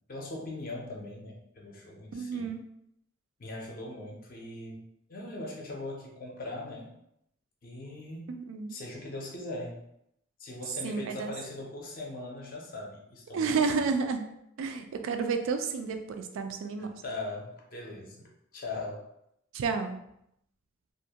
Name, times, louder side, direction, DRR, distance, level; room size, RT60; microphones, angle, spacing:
voice 1, 0.1-2.5 3.4-6.9 7.6-8.3 8.7-9.8 10.4-13.6 16.8-19.0, left 2 dB, 45° left, -1 dB, 0.5 m, -40 dB
voice 2, 2.1-2.6 8.5-8.8 10.8-11.3 13.3-14.3 14.6-16.9 19.5-20.0, right 5 dB, 80° right, 6 dB, 0.3 m, -30 dB
2.4 x 2.1 x 2.7 m, 0.77 s
head